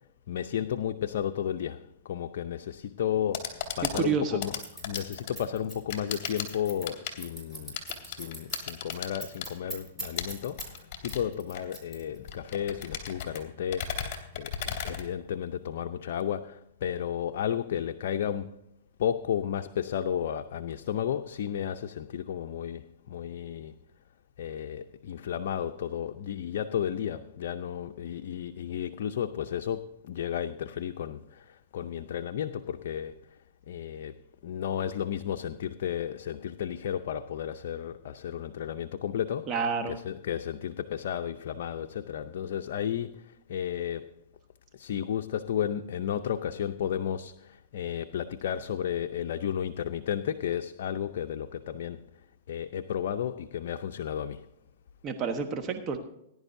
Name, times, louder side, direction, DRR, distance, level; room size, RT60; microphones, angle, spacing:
voice 1, 0.3-4.6 4.8-7.7 8.0-10.6 11.0-13.9 14.4-18.5 19.0-22.8 23.1-23.7 24.4-31.4 31.7-33.1 33.7-34.1 34.4-39.5 39.9-43.2 43.5-44.1 44.7-47.3 47.7-52.0 52.5-54.4, left 9 dB, 65° left, 0.6 m, -33 dB
sound 1, 3.1-15.7, left 8 dB, 40° left, 3.0 m, -38 dB
voice 2, 3.9-4.4 39.5-40.0 55.0-56.0, right 5 dB, 30° right, 1.1 m, -29 dB
Scissors, 4.6-10.8 11.1-12.3, right 1 dB, 10° right, 4.6 m, -41 dB
19.0 x 11.0 x 2.7 m
hypercardioid pair, 135°, 0 cm